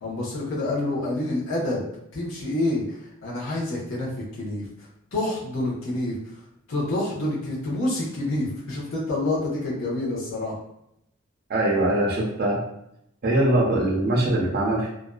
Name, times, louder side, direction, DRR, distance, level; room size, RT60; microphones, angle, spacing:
voice 1, 0.0-1.8 2.1-4.1 4.4-4.7 5.1-6.2 6.7-10.5, left 2 dB, 60° left, -7 dB, 0.7 m, -27 dB
voice 2, 11.5-12.6 13.2-14.9, right 1 dB, 45° right, -4 dB, 0.5 m, -22 dB
2.4 x 2.2 x 2.2 m, 0.78 s
head